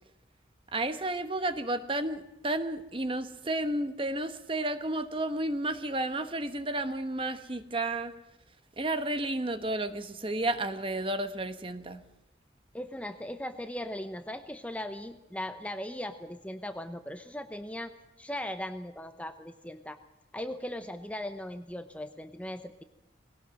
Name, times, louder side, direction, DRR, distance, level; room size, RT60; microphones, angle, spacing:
voice 1, 0.7-8.1 8.8-12.0, right 1 dB, 30° right, 10 dB, 1.1 m, -32 dB
voice 2, 12.7-17.9 18.2-20.0 20.3-22.8, left 1 dB, 5° left, 9 dB, 0.8 m, -38 dB
21.0 x 17.5 x 7.7 m, 0.91 s
head